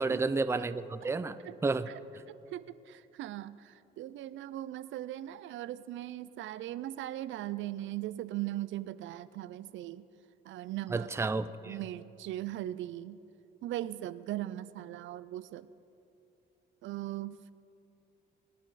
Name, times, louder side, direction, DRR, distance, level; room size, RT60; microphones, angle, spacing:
voice 1, 0.0-1.4 1.6-1.9 10.9-11.8, right 3 dB, 15° right, 12 dB, 0.4 m, -31 dB
voice 2, 2.3-10.0 10.4-11.1 11.7-13.2 13.6-15.7 16.8-17.5, right 14 dB, 75° right, 15 dB, 0.4 m, -39 dB
20.5 x 9.6 x 4.0 m, 2.7 s
cardioid pair, 90°, 20 cm